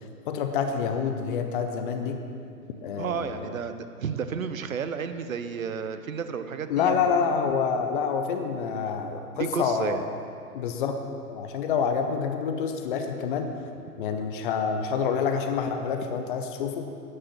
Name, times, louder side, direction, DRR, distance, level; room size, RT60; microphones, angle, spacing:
voice 1, 0.3-2.2 2.8-3.5 6.7-10.1 10.5-11.0 11.3-13.5 14.0-16.9, left 6 dB, 35° left, 6 dB, 0.9 m, -27 dB
voice 2, 3.0-7.2 9.3-10.0, right 6 dB, 60° right, 10 dB, 0.9 m, -32 dB
12.5 x 9.9 x 6.0 m, 2.5 s
figure-of-eight pair, 115°, 46 cm